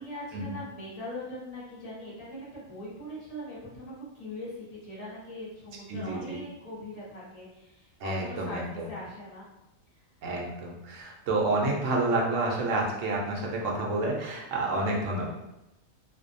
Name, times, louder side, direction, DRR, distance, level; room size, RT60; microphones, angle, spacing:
voice 1, 0.0-9.4, left 1 dB, 35° left, -8 dB, 0.8 m, -41 dB
voice 2, 5.9-6.4 8.0-8.9 10.2-15.3, right 2 dB, 70° right, -2 dB, 0.9 m, -29 dB
2.5 x 2.1 x 2.5 m, 0.92 s
omnidirectional pair, 1.4 m